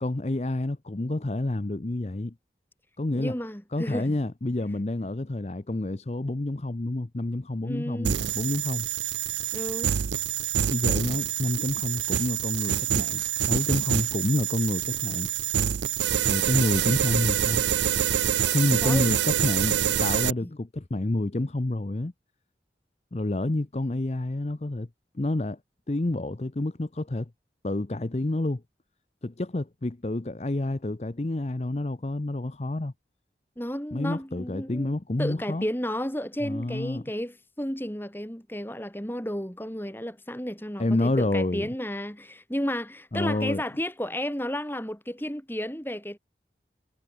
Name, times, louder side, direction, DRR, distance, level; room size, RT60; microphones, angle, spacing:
voice 1, 0.0-2.3 3.0-3.4 3.7-8.9 10.7-15.3 16.3-17.6 18.5-22.1 23.1-24.9 25.1-25.6 25.9-27.3 27.6-28.6 29.2-32.9 33.9-35.7 36.4-37.0 40.8-41.7 43.1-43.6, left 2 dB, 35° left, 0.7 m, -28 dB
voice 2, 3.1-4.2 7.6-8.2 9.5-10.0 18.8-19.2 20.4-20.5 33.6-34.9 35.2-46.2, equal, 10° left, 3.4 m, -32 dB
sound 1, 8.0-20.3, right 10 dB, 85° right, 0.5 m, -26 dB
head